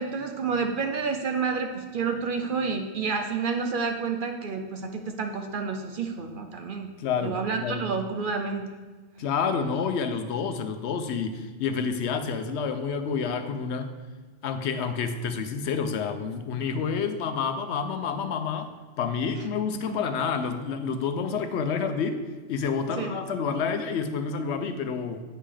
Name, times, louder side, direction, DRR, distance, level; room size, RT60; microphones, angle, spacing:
voice 1, 0.0-6.9 7.2-8.7 19.8-20.0 23.0-23.2, right 5 dB, 60° right, 4 dB, 0.6 m, -29 dB
voice 2, 7.0-7.8 9.2-13.9 14.4-22.2 22.5-25.2, left 6 dB, 75° left, 8 dB, 0.8 m, -29 dB
8.8 x 5.4 x 3.3 m, 1.3 s
omnidirectional pair, 1.2 m